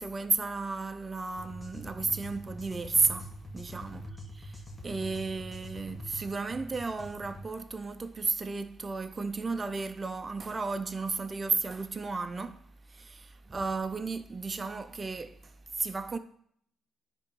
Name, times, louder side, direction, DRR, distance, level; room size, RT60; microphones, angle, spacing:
voice 1, 0.0-4.0 4.3-16.2, right 4 dB, 30° right, 0.5 m, -33 dB
sound 1, 1.4-7.5, left 1 dB, 15° left, 1.8 m, -44 dB
9.9 x 3.8 x 5.3 m
cardioid pair, 90°, 0 cm